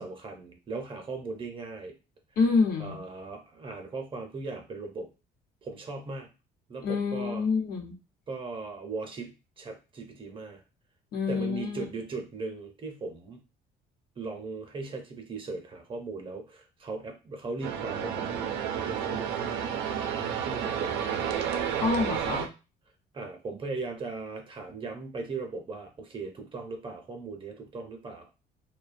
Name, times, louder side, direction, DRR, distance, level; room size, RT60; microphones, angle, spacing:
voice 1, 0.0-2.0 2.8-5.1 5.6-6.3 6.7-7.5 8.3-10.6 11.3-13.4 14.2-19.7 20.5-21.0 23.1-28.3, right 3 dB, 30° right, 4 dB, 0.6 m, -38 dB
voice 2, 2.4-3.0 6.8-7.9 11.1-11.9 21.8-22.5, left 4 dB, 65° left, 3 dB, 0.8 m, -27 dB
sound 1, 17.6-22.5, right 8 dB, 85° right, 0.4 m, -31 dB
2.6 x 2.2 x 2.5 m, 0.29 s
cardioid pair, 110°, 17 cm